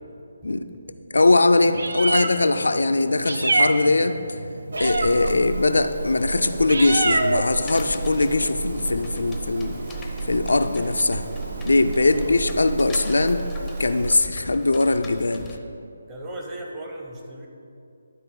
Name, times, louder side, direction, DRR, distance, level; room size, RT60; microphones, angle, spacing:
voice 1, 1.1-4.2 4.8-9.8 10.3-11.3 11.6-13.4 13.8-15.5, left 2 dB, 70° left, 8 dB, 0.4 m, -21 dB
Meow, 1.6-14.1, right 3 dB, 60° right, 0.6 m, -28 dB
sound 1, 3.7-11.6, equal, 35° right, 2.2 m, -44 dB
sound 2, 7.6-15.6, left 3 dB, 10° left, 0.6 m, -43 dB
voice 2, 16.1-17.5, right 1 dB, 15° right, -1 dB, 0.9 m, -37 dB
12.0 x 4.0 x 5.3 m, 2.6 s
figure-of-eight pair, 150°, 0 cm